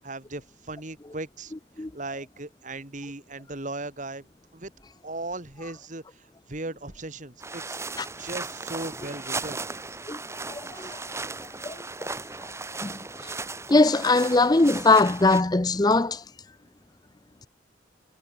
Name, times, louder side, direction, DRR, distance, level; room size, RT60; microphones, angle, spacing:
voice 1, 0.0-4.3 4.5-4.7 5.0-7.8 8.2-9.7 10.7-11.0, right 2 dB, 40° right, 2.0 m, -38 dB
sound 1, 7.4-15.4, right 3 dB, 15° right, 1.6 m, -36 dB
voice 2, 10.5-11.0 11.6-12.1 12.8-12.9 13.7-16.2, left 3 dB, 20° left, 0.6 m, -21 dB
head